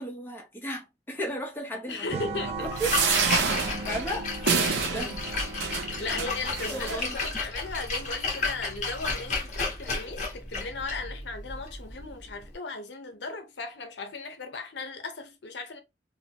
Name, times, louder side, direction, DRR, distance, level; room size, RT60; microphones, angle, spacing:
voice 1, 0.0-2.2 2.6-3.0 3.9-4.3 4.9-5.1 6.7-7.2, right 1 dB, 10° left, 0.8 m, -34 dB
voice 2, 1.9-2.7 4.9-5.2 6.0-15.8, left 3 dB, 75° left, 0.7 m, -37 dB
sound 1, 2.1-7.2, right 3 dB, 35° right, 0.4 m, -39 dB
Splash splatter, 2.6-12.5, left 3 dB, 45° left, 1.1 m, -33 dB
sound 2, 2.8-7.3 8.0-8.1 8.3-8.4, right 5 dB, 85° right, 0.7 m, -28 dB
3.9 x 2.1 x 2.9 m
head